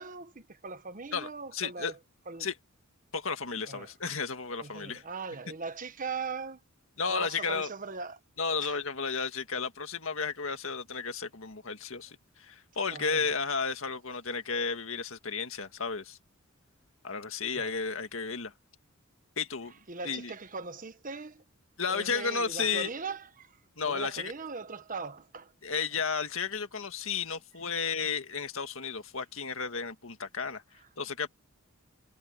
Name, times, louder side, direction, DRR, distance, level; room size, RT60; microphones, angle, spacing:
voice 1, 0.0-2.0 2.3-2.5 3.7-3.9 4.6-6.6 7.1-8.2 8.6-8.8 12.9-13.3 17.5-17.7 19.9-21.4 21.9-25.5 25.9-26.0 27.8-27.9 30.8-30.9, right 4 dB, 40° right, 1.2 m, -40 dB
voice 2, 1.1-1.9 2.4-2.5 3.1-5.0 7.0-7.7 8.4-16.2 17.0-18.5 19.4-19.7 20.0-20.3 21.8-22.9 23.8-24.3 25.6-30.6 31.0-31.3, left 5 dB, 65° left, 2.0 m, -33 dB
head